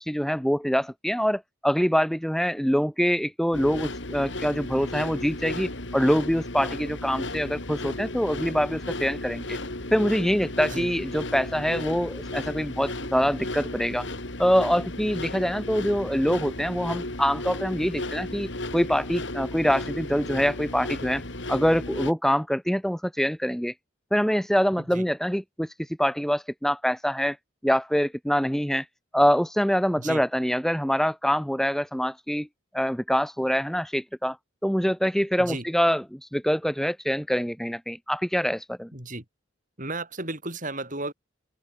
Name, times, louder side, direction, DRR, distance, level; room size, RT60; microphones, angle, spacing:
voice 1, 0.0-9.6 9.9-14.1 14.4-21.2 21.5-23.7 24.1-25.7 26.0-27.4 27.6-28.8 29.1-32.5 32.7-34.4 34.6-38.9, equal, ahead, 1.5 m, -25 dB
sound 1, 3.5-22.1, left 2 dB, 60° left, 3.2 m, -34 dB
voice 2, 38.9-39.2 39.8-41.1, right 2 dB, 40° right, 5.7 m, -34 dB
open air
head